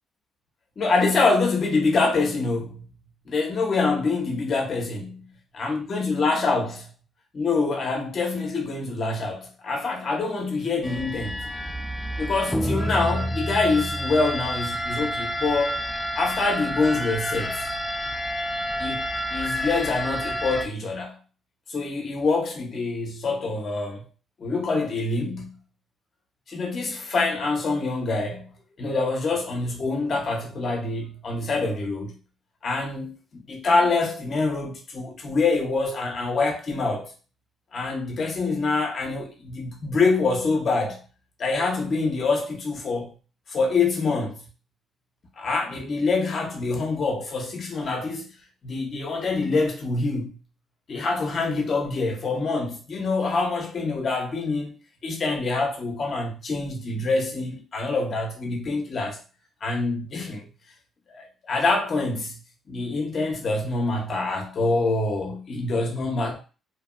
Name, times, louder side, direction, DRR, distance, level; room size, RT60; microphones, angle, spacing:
voice 1, 0.8-2.8 3.3-5.2 5.6-6.9 7.3-11.4 12.2-15.9 16.1-17.7 18.8-21.1 21.7-24.0 24.4-25.5 26.5-28.4 28.8-32.1 32.6-37.1 37.7-41.0 41.4-43.1 43.5-44.5 45.4-48.2 48.6-50.3 50.9-54.8 55.0-59.2 59.6-60.5 61.1-62.4 62.7-66.4, left 3 dB, 50° left, 0.9 m, -25 dB
sound 1, 10.8-20.7, equal, 10° left, 0.4 m, -29 dB
2.9 x 2.6 x 2.3 m
cardioid pair, 90°, 0 cm